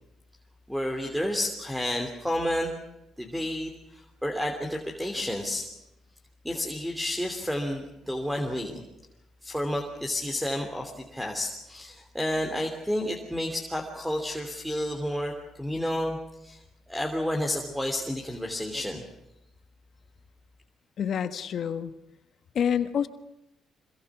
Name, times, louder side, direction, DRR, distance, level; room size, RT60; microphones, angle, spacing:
voice 1, 0.7-2.7 3.2-5.6 6.4-8.8 9.4-16.6 16.9-19.0, left 1 dB, 5° right, 4 dB, 3.1 m, -31 dB
voice 2, 21.0-21.9 22.5-23.1, left 8 dB, 60° left, 10 dB, 1.5 m, -27 dB
25.5 x 22.5 x 6.2 m, 0.90 s
cardioid pair, 90°, 0 cm